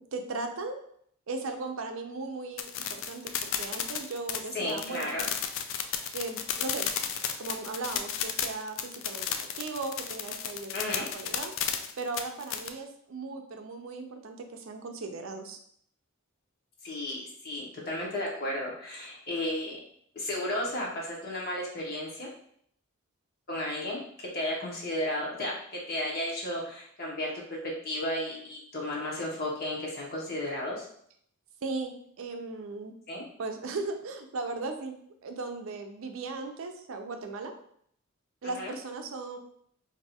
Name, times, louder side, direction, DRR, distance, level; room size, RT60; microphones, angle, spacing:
voice 1, 0.1-0.8 1.3-5.2 6.1-10.7 11.0-11.5 12.0-15.6 31.6-32.9 33.4-35.0 35.2-37.5 38.4-39.4, right 3 dB, 70° right, 5 dB, 0.5 m, -37 dB
sound 1, 2.6-12.7, left 8 dB, 65° left, 0.3 m, -33 dB
voice 2, 4.5-5.3 10.7-11.0 16.8-19.8 20.1-22.3 23.5-25.5 25.9-27.3 27.6-30.8 33.1-33.2 38.4-38.7, left 1 dB, 50° left, -4 dB, 0.8 m, -33 dB
2.6 x 2.3 x 4.1 m, 0.65 s
head